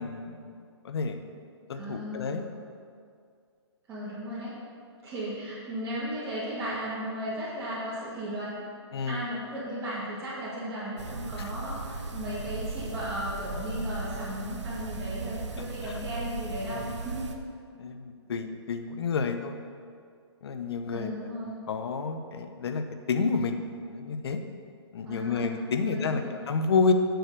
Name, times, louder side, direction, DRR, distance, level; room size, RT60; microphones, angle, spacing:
voice 1, 0.0-1.4 1.7-2.5 8.9-9.2 11.4-11.5 15.8-16.0 17.8-19.6 20.4-21.1 21.4-24.4 24.9-26.9, left 4 dB, 60° left, 8 dB, 0.9 m, -30 dB
voice 2, 1.7-2.5 3.9-4.6 5.0-8.6 8.9-17.3 20.9-21.6 25.0-25.6 25.9-26.3, equal, 15° right, -13 dB, 2.5 m, -35 dB
sound 1, 11.0-17.3, right 3 dB, 75° right, 1.0 m, -37 dB
7.9 x 6.5 x 6.8 m, 2.3 s
hypercardioid pair, 145°, 15 cm